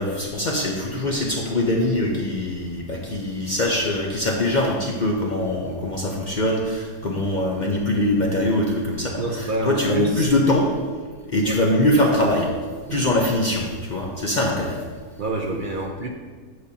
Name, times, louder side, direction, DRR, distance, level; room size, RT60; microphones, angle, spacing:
voice 1, 0.0-10.7 11.3-12.5 12.9-14.8, left 1 dB, 50° left, -1 dB, 0.5 m, -22 dB
voice 2, 9.2-10.3 11.4-11.6 12.9-13.1 15.2-16.1, right 2 dB, 55° right, 1 dB, 0.5 m, -28 dB
7.9 x 6.6 x 2.8 m, 1.5 s
omnidirectional pair, 1.6 m